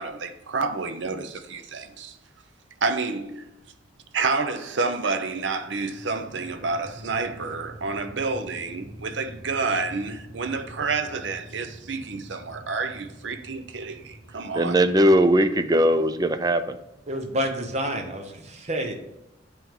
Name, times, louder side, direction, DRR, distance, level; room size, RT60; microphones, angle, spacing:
voice 1, 0.0-2.2 2.8-3.5 4.1-14.8, right 4 dB, 70° right, 0.7 m, -29 dB
sound 1, 5.4-17.7, right 1 dB, 5° left, 1.7 m, -46 dB
voice 2, 14.5-16.8, equal, 20° right, 0.4 m, -19 dB
voice 3, 17.1-18.9, equal, 35° right, 0.9 m, -29 dB
8.9 x 3.5 x 3.6 m
head